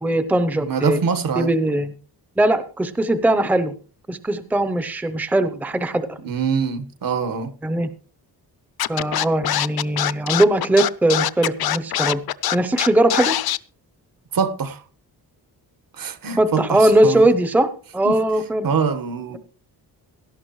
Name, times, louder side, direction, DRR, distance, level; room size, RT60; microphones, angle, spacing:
voice 1, 0.0-1.0 1.4-1.9 2.4-3.7 4.1-6.2 7.6-7.9 8.9-12.2 12.5-13.3 16.4-18.7, right 1 dB, 5° right, 11 dB, 0.6 m, -20 dB
voice 2, 0.6-1.5 6.2-7.5 14.3-14.8 16.0-17.2 18.0-18.2 18.6-19.4, right 6 dB, 55° right, 12 dB, 1.5 m, -24 dB
Scratching (performance technique), 8.8-13.6, left 12 dB, 65° left, 0.6 m, -23 dB
17.5 x 13.0 x 3.1 m, 0.39 s
wide cardioid pair, 155°, 39 cm